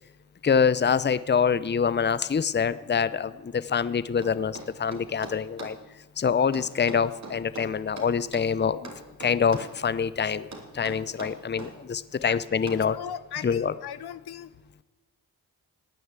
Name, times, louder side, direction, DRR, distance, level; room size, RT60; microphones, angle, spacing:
voice 1, 0.4-5.8 6.2-8.9 9.2-10.5 10.7-13.0 13.4-13.7, left 6 dB, 25° left, 16 dB, 0.7 m, -25 dB
sound 1, 4.2-5.8 6.5-8.5 8.8-9.8 10.5-11.8 12.7-12.9, right 3 dB, 45° right, 3.4 m, -41 dB
voice 2, 12.9-14.5, left 9 dB, 75° left, 15 dB, 0.8 m, -38 dB
17.5 x 9.2 x 8.3 m, 1.2 s
cardioid pair, 50°, 39 cm